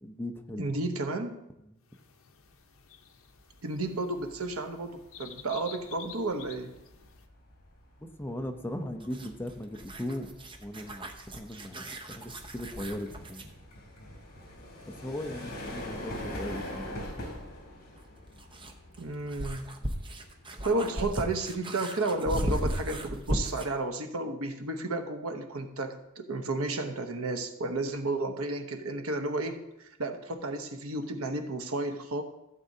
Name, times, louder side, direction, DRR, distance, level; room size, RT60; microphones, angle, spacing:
voice 1, 0.0-0.8 8.0-10.3 10.6-13.5 15.0-17.1, left 1 dB, 10° left, 6 dB, 0.6 m, -38 dB
voice 2, 0.6-1.4 3.6-6.7 19.0-19.7 20.6-32.2, right 2 dB, 70° right, 5 dB, 0.9 m, -32 dB
sound 1, 1.9-7.3, left 8 dB, 65° left, 0.8 m, -51 dB
sound 2, 3.5-3.8 4.2-20.9, left 1 dB, 50° left, 3.4 m, -44 dB
sound 3, 9.0-13.5 15.9-16.0 18.0-23.8, right 1 dB, 25° right, 0.8 m, -36 dB
15.0 x 7.6 x 2.7 m, 0.89 s
head